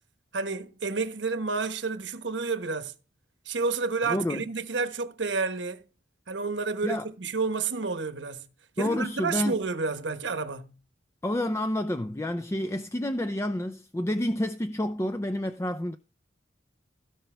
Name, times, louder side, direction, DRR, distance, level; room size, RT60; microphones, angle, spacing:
voice 1, 0.3-2.9 3.5-5.8 6.3-8.5 8.8-10.8, right 4 dB, 75° right, 1.1 m, -30 dB
voice 2, 4.1-4.4 6.8-7.1 8.8-9.6 11.2-16.0, left 1 dB, 15° left, 0.4 m, -29 dB
16.5 x 5.7 x 3.4 m
head